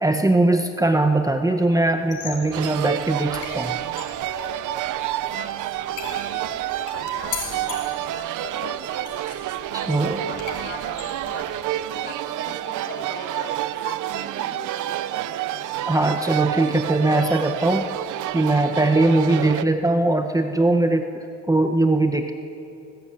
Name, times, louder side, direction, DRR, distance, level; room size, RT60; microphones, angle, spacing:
voice 1, 0.0-3.8 9.7-10.2 15.9-17.9 18.3-22.3, right 2 dB, 10° right, 6 dB, 1.3 m, -20 dB
sound 1, 2.0-11.8, left 6 dB, 85° left, 4.6 m, -39 dB
sound 2, 2.5-19.6, right 13 dB, 85° right, 0.8 m, -29 dB
voice 2, 6.0-9.1 9.8-15.3, left 3 dB, 40° left, 0 dB, 4.7 m, -41 dB
23.0 x 19.0 x 9.0 m, 2.7 s
cardioid pair, 90°, 30 cm